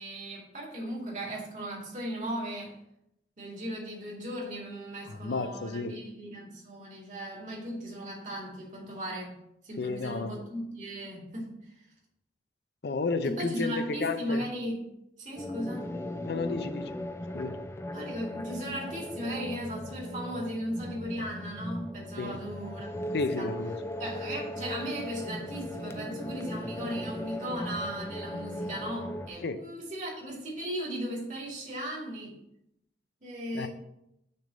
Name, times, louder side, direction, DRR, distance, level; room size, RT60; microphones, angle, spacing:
voice 1, 0.0-2.8 3.4-11.7 13.2-14.9 15.2-16.0 17.9-23.5 24.0-32.4 33.2-33.7, equal, 45° right, 2.3 m, -37 dB
voice 2, 5.1-6.0 9.8-10.4 12.8-14.5 16.3-16.9 17.3-17.6 22.2-22.4 23.1-23.8 29.4-29.6 33.5-33.7, left 3 dB, 70° left, 0.5 m, -32 dB
sound 1, 15.4-29.3, left 1 dB, 15° left, 0.4 m, -38 dB
6.6 x 3.5 x 6.2 m
head